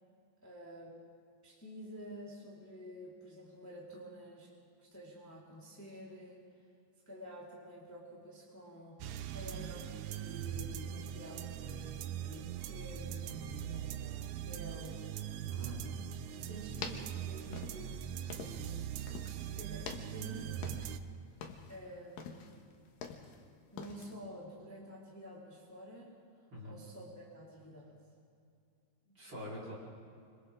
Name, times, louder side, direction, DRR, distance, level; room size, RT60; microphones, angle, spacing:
voice 1, 0.4-1.0 1.4-4.5 4.8-6.4 7.1-15.5 16.3-18.0 18.3-18.8 19.6-20.7 21.7-22.5 23.7-26.2 26.6-28.0, equal, 5° left, -7 dB, 3.9 m, -50 dB
sound 1, 9.0-21.0, right 10 dB, 80° right, 1.7 m, -41 dB
voice 2, 15.6-15.9 26.5-26.8 29.1-29.7, equal, 30° right, -5 dB, 5.3 m, -45 dB
sound 2, 16.5-18.8 19.1-19.5 19.8-21.1 21.3-21.8 22.2-23.4 23.8-24.1, left 6 dB, 70° left, 2.9 m, -46 dB
28.0 x 26.0 x 3.8 m, 2.4 s
omnidirectional pair, 4.2 m